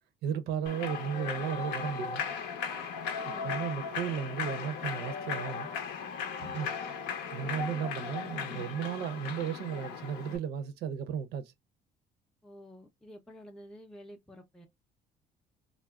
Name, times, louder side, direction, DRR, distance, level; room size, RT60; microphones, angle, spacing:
voice 1, 0.2-2.2 3.4-5.7 6.4-6.7 7.3-11.5, right 8 dB, 80° right, 0.5 m, -35 dB
Human voice / Clapping / Cheering, 0.7-10.4, left 6 dB, 80° left, 0.6 m, -37 dB
voice 2, 3.2-3.5 12.4-14.7, equal, 5° left, 0.4 m, -50 dB
3.5 x 2.0 x 2.2 m
cardioid pair, 110°, 17 cm